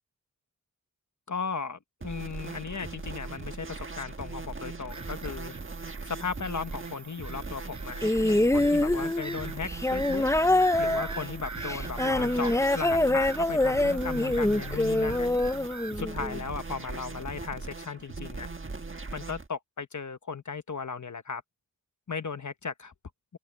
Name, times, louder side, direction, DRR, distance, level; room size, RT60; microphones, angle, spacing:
voice 1, 1.3-5.5 6.0-10.2 10.8-15.3 16.0-18.5 19.1-21.4 22.1-22.9, left 5 dB, 55° left, 1.0 m, -36 dB
sound 1, 2.0-19.5, right 3 dB, 35° right, 1.4 m, -39 dB
Bird vocalization bird call bird song / Gull seagull, 4.9-16.0, right 4 dB, 55° right, 4.5 m, -44 dB
sound 2, 8.0-16.4 17.4-17.5, left 1 dB, 10° left, 0.5 m, -25 dB
wide cardioid pair, 90°, 35 cm